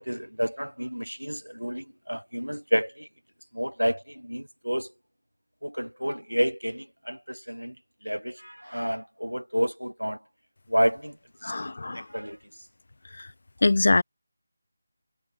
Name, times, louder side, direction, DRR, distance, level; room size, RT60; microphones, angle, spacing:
voice 1, 0.0-3.1 3.5-4.9 5.6-7.8 8.0-10.2 10.7-11.2 11.4-12.4, equal, 85° right, 2.0 m, -30 dB
voice 2, 11.4-12.0 13.6-14.0, left 2 dB, 50° left, 0.5 m, -22 dB
figure-of-eight pair, 160°, 0 cm